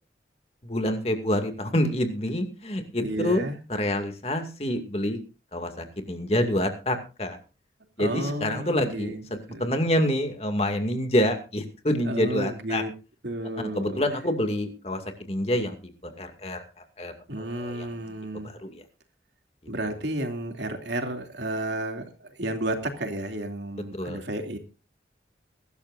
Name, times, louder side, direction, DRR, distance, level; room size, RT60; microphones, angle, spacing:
voice 1, 0.6-3.4 3.7-5.2 5.5-7.4 8.0-12.8 13.7-18.8 23.9-24.2, left 1 dB, 35° left, 6 dB, 2.3 m, -27 dB
voice 2, 3.0-3.6 8.0-9.2 9.5-9.7 12.1-12.9 13.2-14.0 17.3-18.5 19.7-24.6, right 1 dB, 80° right, 5 dB, 2.8 m, -32 dB
22.5 x 12.5 x 2.6 m, 0.32 s
head